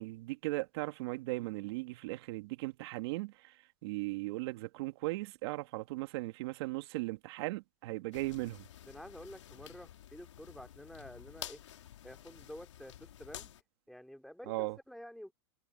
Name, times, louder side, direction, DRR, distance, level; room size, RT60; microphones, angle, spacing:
voice 1, 0.0-3.5 3.8-8.7 14.5-14.8, right 21 dB, 60° right, 2.5 m, -37 dB
sound 1, 8.1-13.6, left 11 dB, 85° left, 3.3 m, -50 dB
voice 2, 8.8-11.6 12.0-13.5 13.9-15.3, equal, ahead, 2.7 m, -50 dB
hypercardioid pair, 130°, 15 cm